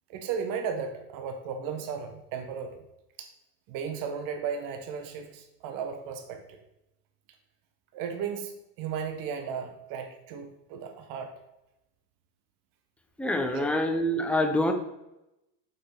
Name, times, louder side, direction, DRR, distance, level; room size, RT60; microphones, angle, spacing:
voice 1, 0.1-2.8 3.2-3.3 3.7-6.6 7.9-11.3 13.5-13.7, right 6 dB, 45° right, 5 dB, 1.4 m, -35 dB
voice 2, 13.2-14.7, left 1 dB, 5° left, 5 dB, 0.5 m, -26 dB
7.0 x 6.2 x 4.8 m, 0.90 s
supercardioid pair, 125°, 48 cm